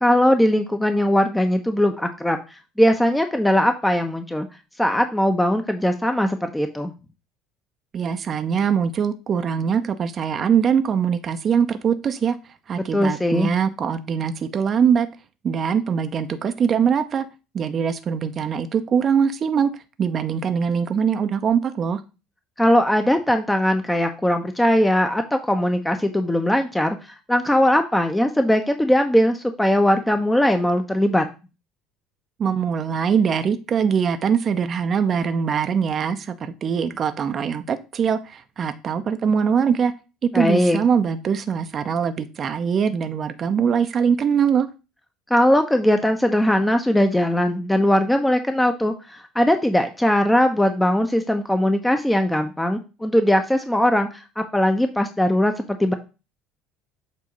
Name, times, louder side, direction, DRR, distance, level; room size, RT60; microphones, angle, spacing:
voice 1, 0.0-4.5 4.8-6.9 12.9-13.5 22.6-27.0 27.3-31.2 40.3-40.8 45.3-55.9, left 1 dB, 10° left, 6 dB, 0.8 m, -20 dB
voice 2, 7.9-12.4 12.7-15.1 15.4-17.3 17.5-19.7 20.0-22.0 32.4-39.9 40.2-44.7, right 7 dB, 40° right, 10 dB, 0.6 m, -22 dB
7.4 x 2.8 x 5.3 m, 0.30 s
hypercardioid pair, 65°, 0 cm